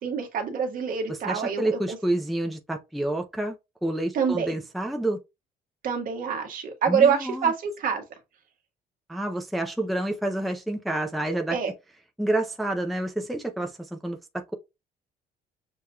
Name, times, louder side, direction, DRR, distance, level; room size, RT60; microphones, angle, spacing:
voice 1, 0.0-2.0 4.1-4.5 5.8-8.0 11.5-11.7, right 6 dB, 55° right, 1.4 m, -26 dB
voice 2, 1.1-3.5 3.8-5.2 6.9-7.5 9.1-11.6 12.2-14.5, right 1 dB, ahead, 0.5 m, -29 dB
6.7 x 2.9 x 2.3 m
cardioid pair, 110°, 17 cm